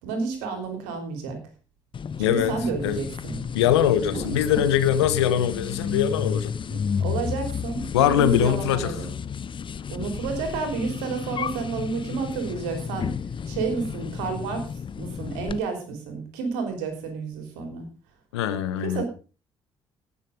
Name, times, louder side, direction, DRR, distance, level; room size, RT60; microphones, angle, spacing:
voice 1, 0.0-1.4 2.3-3.4 4.1-4.4 6.7-9.1 9.9-13.1 13.5-14.7 15.0-17.8 18.8-19.0, right 5 dB, 75° right, 5 dB, 3.4 m, -30 dB
sound 1, 1.9-15.6, left 7 dB, 35° left, 0.7 m, -32 dB
voice 2, 2.2-2.5 2.8-3.0 3.5-6.5 7.9-8.9 18.3-19.0, left 10 dB, 80° left, 13 dB, 1.0 m, -22 dB
17.0 x 7.2 x 5.0 m, 0.36 s
figure-of-eight pair, 45°, 14 cm